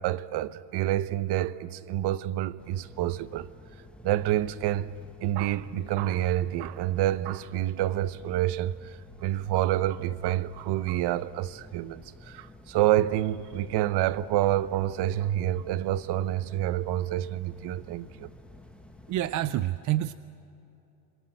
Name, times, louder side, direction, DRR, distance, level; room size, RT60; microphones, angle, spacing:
voice 1, 0.0-3.5 4.0-4.9 5.2-18.3, right 13 dB, 55° right, 0.9 m, -28 dB
sound 1, 2.6-19.6, left 2 dB, ahead, 1.3 m, -51 dB
voice 2, 19.1-20.1, right 14 dB, 40° right, 0.5 m, -27 dB
27.5 x 22.5 x 7.7 m
cardioid pair, 130°, 48 cm